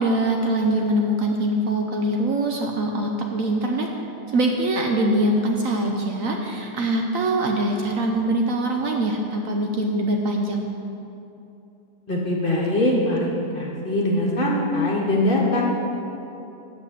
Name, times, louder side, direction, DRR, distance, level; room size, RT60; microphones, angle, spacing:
voice 1, 0.0-3.9 4.3-10.7, right 1 dB, 60° right, 2 dB, 1.0 m, -23 dB
voice 2, 12.1-15.6, left 1 dB, 35° left, -2 dB, 1.3 m, -22 dB
8.3 x 6.5 x 7.4 m, 2.9 s
omnidirectional pair, 1.8 m